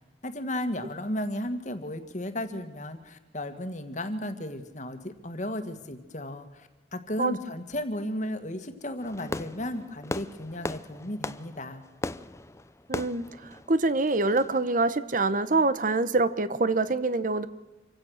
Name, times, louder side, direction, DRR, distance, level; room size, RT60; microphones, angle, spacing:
voice 1, 0.2-11.8, left 1 dB, 45° left, 8 dB, 1.8 m, -34 dB
Fireworks, 9.0-14.6, left 2 dB, 15° left, 0.6 m, -38 dB
voice 2, 12.9-17.5, right 3 dB, 45° right, 14 dB, 0.9 m, -25 dB
27.0 x 16.0 x 6.5 m, 1.2 s
head